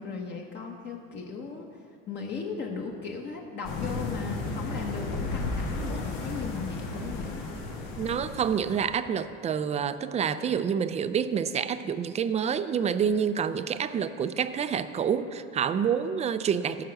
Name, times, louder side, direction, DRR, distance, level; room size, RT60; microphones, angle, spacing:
voice 1, 0.0-1.7 2.1-7.5, left 5 dB, 35° left, 0 dB, 1.2 m, -37 dB
sound 1, 3.6-8.9, left 3 dB, 85° left, 2.4 m, -34 dB
voice 2, 8.0-16.8, right 7 dB, 25° right, 12 dB, 0.4 m, -28 dB
15.0 x 5.8 x 6.4 m, 2.3 s
cardioid pair, 130°, 29 cm